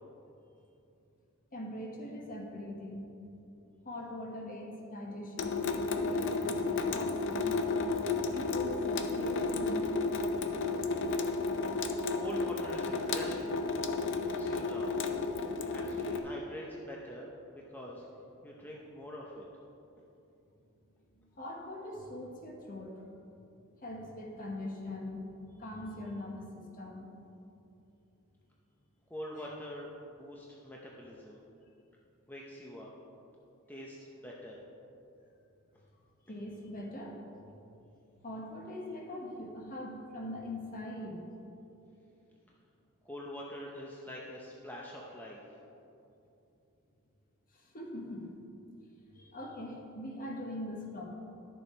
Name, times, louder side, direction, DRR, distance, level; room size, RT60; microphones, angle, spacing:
voice 1, 1.5-3.0 3.8-5.7 6.1-7.7 8.3-9.9 21.4-22.9 23.8-25.2 25.6-27.1 36.3-37.2 37.4-37.5 38.2-41.2 47.7-48.4 49.1-51.1, left 1 dB, 40° left, 0 dB, 1.4 m, -42 dB
Water tap faucet / Sink (filling or washing) / Drip, 5.4-16.2, left 3 dB, 55° left, 0.6 m, -32 dB
voice 2, 12.2-13.6 14.2-14.9 15.7-18.1 18.4-19.5 29.1-31.4 32.3-32.9 33.7-34.0 34.2-34.6 43.0-45.6, equal, 10° left, -3 dB, 0.7 m, -44 dB
11.5 x 6.9 x 4.4 m, 2.8 s
head